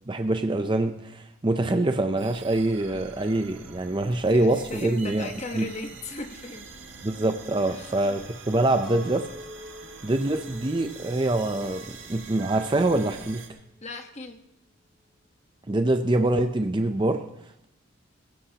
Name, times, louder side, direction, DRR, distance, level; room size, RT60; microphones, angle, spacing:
voice 1, 0.1-5.3 5.5-5.7 7.0-9.3 10.0-13.4 15.7-17.2, right 2 dB, 20° right, 7 dB, 0.5 m, -25 dB
sound 1, 2.2-13.5, right 4 dB, 60° right, 1.8 m, -45 dB
voice 2, 4.1-6.8 7.7-8.1 13.8-14.4, left 2 dB, 30° left, 5 dB, 1.1 m, -38 dB
Chink clink, 8.8-13.1 13.6-14.2, left 1 dB, 5° right, 1.7 m, -48 dB
22.5 x 15.5 x 2.9 m, 0.81 s
head